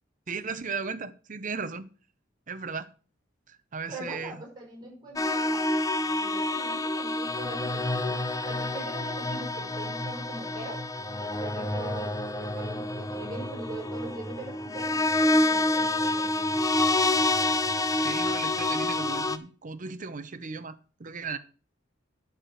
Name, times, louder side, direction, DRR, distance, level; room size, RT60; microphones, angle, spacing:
voice 1, 0.3-1.9 2.5-2.9 3.5-4.4 17.9-21.4, right 5 dB, 45° right, 0.8 m, -36 dB
voice 2, 3.9-10.9 11.4-16.3, right 1 dB, 25° right, 5.2 m, -42 dB
sound 1, 5.2-19.4, left 2 dB, 20° left, 0.7 m, -28 dB
10.5 x 4.9 x 7.6 m
head